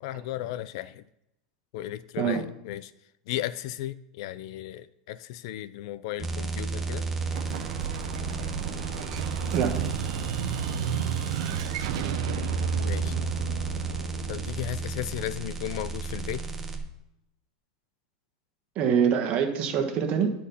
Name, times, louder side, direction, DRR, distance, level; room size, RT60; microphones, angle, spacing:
voice 1, 0.0-1.0 1.7-2.9 3.3-7.0 12.8-13.2 14.3-16.4, left 13 dB, 60° left, 17 dB, 0.4 m, -35 dB
sound 1, 6.2-16.8, right 3 dB, 10° right, 0.9 m, -33 dB
Explosion, 7.2-15.8, right 9 dB, 65° right, 0.8 m, -33 dB
voice 2, 18.7-20.3, right 7 dB, 35° right, 4 dB, 1.4 m, -25 dB
10.0 x 4.2 x 5.6 m, 0.84 s
supercardioid pair, 150°, 3 cm